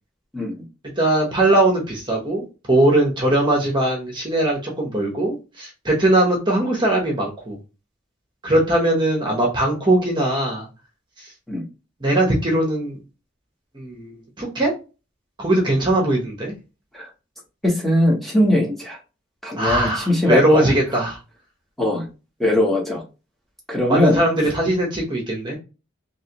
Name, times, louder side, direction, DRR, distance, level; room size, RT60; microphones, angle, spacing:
voice 1, 0.3-0.6 11.5-11.6 16.9-17.1 17.6-19.0 19.4-20.7 21.8-22.0 22.4-23.0 23.7-24.2, left 1 dB, ahead, -2 dB, 1.0 m, -20 dB
voice 2, 1.0-7.6 8.4-10.7 11.2-11.3 12.0-13.0 13.7-14.7 15.4-16.5 19.6-21.2 23.9-25.6, right 1 dB, 25° right, -1 dB, 1.0 m, -20 dB
3.2 x 2.9 x 2.9 m, 0.30 s
head